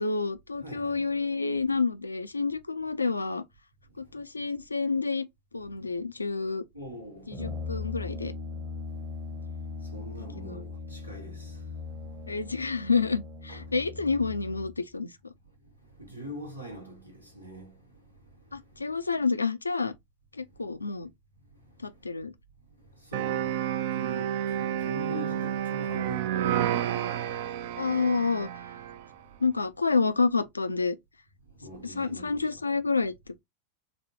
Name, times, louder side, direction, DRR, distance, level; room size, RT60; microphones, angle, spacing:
voice 1, 0.0-3.4 4.0-5.3 5.5-6.6 7.3-8.3 10.4-10.6 12.3-15.3 18.5-19.9 20.3-21.1 21.8-22.3 27.8-28.5 29.4-31.0 31.8-33.1, left 4 dB, 80° left, 0.4 m, -29 dB
voice 2, 0.6-1.1 3.9-4.2 6.7-7.6 8.9-12.3 13.5-13.6 15.8-18.8 21.6-21.8 22.8-27.8 29.2-29.3 31.5-32.5, equal, 90° right, 1.0 m, -45 dB
Brass instrument, 7.3-14.8, left 4 dB, 20° right, 0.7 m, -39 dB
sound 1, 23.1-29.1, right 10 dB, 50° right, 0.3 m, -30 dB
4.0 x 2.1 x 2.8 m
figure-of-eight pair, 90°, 0 cm